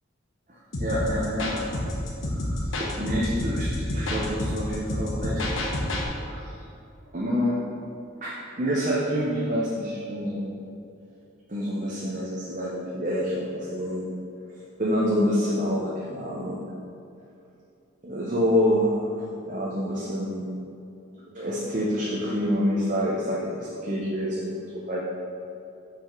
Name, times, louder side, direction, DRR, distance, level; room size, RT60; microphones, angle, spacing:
sound 1, 0.7-6.1, left 1 dB, 85° left, 1.0 m, -29 dB
voice 1, 0.8-1.8 2.2-2.6 3.0-5.5 6.2-6.4 7.1-7.6 8.2-10.5 11.5-14.0 14.8-16.7 18.0-20.5 21.3-25.0, equal, 40° right, -6 dB, 0.8 m, -27 dB
5.8 x 5.1 x 4.5 m, 2.7 s
head